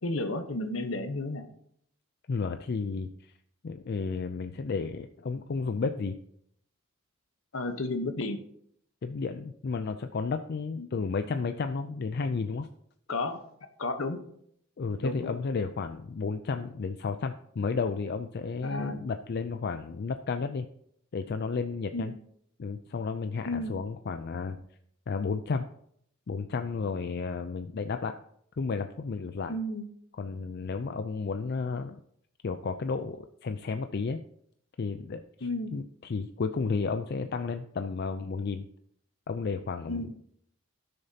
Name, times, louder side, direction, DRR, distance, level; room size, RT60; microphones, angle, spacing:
voice 1, 0.0-1.4 7.5-8.4 10.8-10.9 13.1-13.4 13.8-14.2 15.0-15.4 18.6-18.9 21.9-22.1 23.4-23.7 29.5-29.9 35.4-35.7 39.9-40.1, left 2 dB, 75° left, 8 dB, 1.0 m, -32 dB
voice 2, 2.3-3.3 3.6-6.2 9.0-12.7 14.8-20.7 21.1-22.1 22.6-24.6 25.1-25.6 26.3-28.2 28.6-29.6 30.2-32.0 32.4-34.2 34.8-38.7 39.3-40.2, left 4 dB, 55° left, 8 dB, 0.4 m, -32 dB
16.0 x 6.6 x 2.8 m, 0.70 s
head